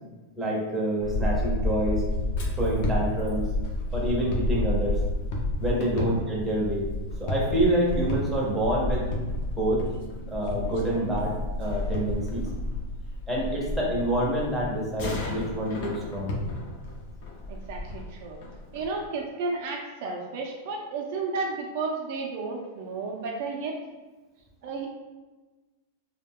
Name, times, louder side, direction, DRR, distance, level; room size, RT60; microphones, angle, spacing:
voice 1, 0.4-2.0 2.5-3.5 3.9-5.0 5.6-6.9 7.2-9.0 9.6-9.8 10.3-12.5 13.3-16.4, right 1 dB, 5° right, -6 dB, 0.6 m, -27 dB
sound 1, 1.0-19.0, left 1 dB, 50° left, 0.6 m, -30 dB
voice 2, 17.5-18.4 18.7-23.8 24.6-24.9, right 4 dB, 50° right, 0 dB, 0.4 m, -32 dB
2.3 x 2.1 x 3.5 m, 1.2 s
supercardioid pair, 160°, 0 cm